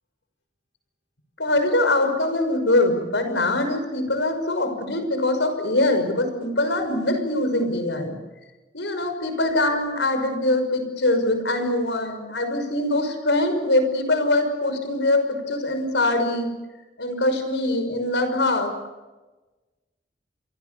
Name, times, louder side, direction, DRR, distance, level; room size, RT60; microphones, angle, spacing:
voice 1, 1.4-8.2 8.7-16.5 17.0-18.7, left 2 dB, 85° left, 8 dB, 5.9 m, -23 dB
29.0 x 24.0 x 7.0 m, 1.2 s
head